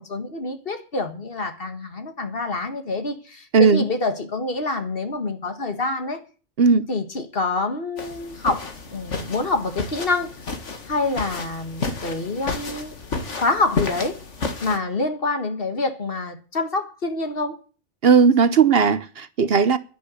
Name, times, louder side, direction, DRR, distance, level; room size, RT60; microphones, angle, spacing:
voice 1, 0.0-6.2 6.7-10.4 10.9-12.9 13.4-14.2 14.6-17.6, left 3 dB, 50° left, 1.9 m, -26 dB
voice 2, 3.5-3.8 6.6-6.9 18.0-19.8, right 5 dB, 60° right, 1.0 m, -16 dB
sound 1, 8.0-14.8, left 4 dB, 75° left, 2.1 m, -31 dB
11.0 x 10.0 x 8.1 m
omnidirectional pair, 1.2 m